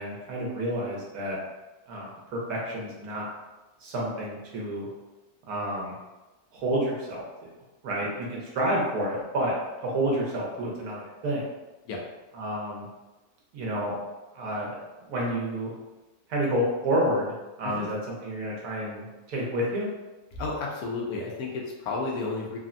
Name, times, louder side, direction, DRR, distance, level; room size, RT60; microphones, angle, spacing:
voice 1, 0.0-1.4 1.9-3.3 3.8-4.9 5.5-5.9 6.5-7.2 7.8-9.6 9.8-11.4 12.3-12.9 13.5-14.0 14.3-14.7 15.1-15.7 16.3-17.3 17.6-19.9, right 1 dB, 80° right, -3 dB, 1.3 m, -29 dB
voice 2, 20.4-22.6, left 3 dB, 80° left, -1 dB, 1.1 m, -32 dB
3.3 x 2.1 x 2.5 m, 1.1 s
omnidirectional pair, 1.6 m